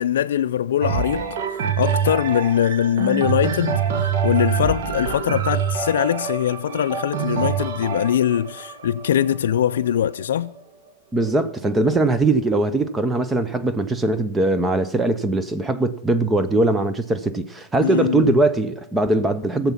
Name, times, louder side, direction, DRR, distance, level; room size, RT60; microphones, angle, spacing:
voice 1, 0.0-1.4 1.8-10.5 17.8-18.3, left 10 dB, 80° left, 0.4 m, -22 dB
sound 1, 0.8-10.6 11.2-11.3, right 7 dB, 55° right, 1.4 m, -25 dB
voice 2, 11.1-19.7, right 2 dB, 10° right, 0.6 m, -21 dB
16.5 x 7.1 x 5.7 m
hypercardioid pair, 140°, 0 cm